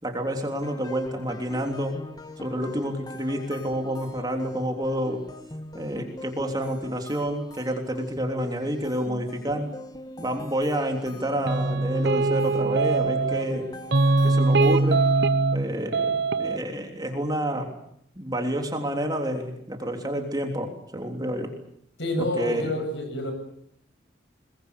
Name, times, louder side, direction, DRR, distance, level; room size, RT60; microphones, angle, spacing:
voice 1, 0.0-2.0 2.4-5.2 5.7-9.7 10.2-13.7 14.2-15.0 15.5-17.7 18.1-21.5 22.2-22.7, equal, 20° right, 4 dB, 3.4 m, -29 dB
sound 1, 0.6-15.3, left 1 dB, 20° left, 1.8 m, -42 dB
sound 2, 11.4-13.5 13.9-15.6 15.9-16.6, right 3 dB, 60° right, 1.0 m, -22 dB
voice 2, 22.0-23.3, left 1 dB, 70° left, 6 dB, 7.6 m, -28 dB
23.5 x 21.0 x 8.4 m, 0.70 s
head